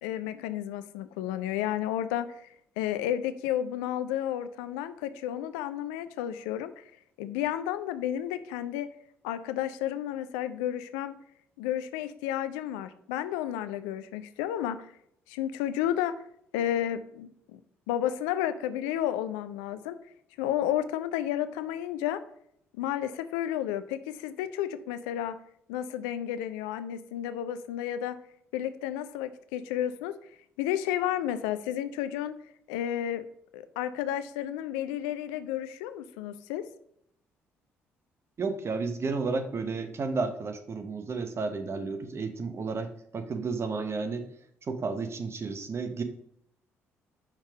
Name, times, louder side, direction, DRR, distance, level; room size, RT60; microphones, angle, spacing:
voice 1, 0.0-2.4 2.8-6.9 7.2-8.9 9.2-11.1 11.6-14.9 15.3-16.2 16.5-17.6 17.9-20.0 20.4-22.2 22.7-25.4 25.7-28.2 28.5-30.1 30.6-32.4 32.7-33.2 33.5-36.6, left 11 dB, 75° left, 12 dB, 0.4 m, -32 dB
voice 2, 38.4-44.2 44.7-46.0, right 4 dB, 40° right, 8 dB, 0.9 m, -32 dB
5.6 x 3.5 x 4.8 m, 0.71 s
hypercardioid pair, 45°, 7 cm